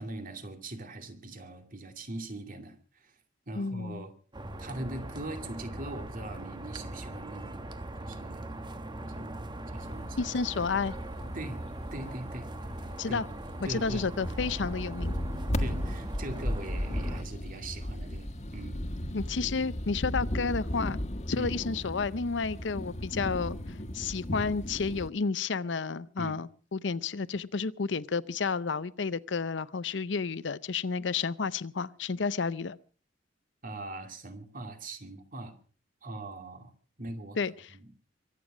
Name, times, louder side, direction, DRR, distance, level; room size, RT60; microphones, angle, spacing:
voice 1, 0.0-3.1 3.5-4.1 4.6-7.6 8.0-8.6 9.1-9.4 9.7-10.3 11.3-11.6 11.9-12.5 13.1-13.2 13.6-14.1 15.6-18.8 21.4-21.6 26.2-26.3 33.6-35.5 36.0-36.7 37.0-37.4 37.7-37.9, right 2 dB, 50° right, 2.5 m, -41 dB
voice 2, 3.5-4.0 10.2-10.9 13.0-13.3 13.7-15.1 19.1-21.0 21.3-32.8 37.4-37.8, left 4 dB, 70° left, 0.6 m, -31 dB
sound 1, 4.3-17.2, right 1 dB, 25° right, 1.2 m, -41 dB
sound 2, 9.8-25.1, equal, 40° left, 1.6 m, -36 dB
23.5 x 9.3 x 6.1 m
head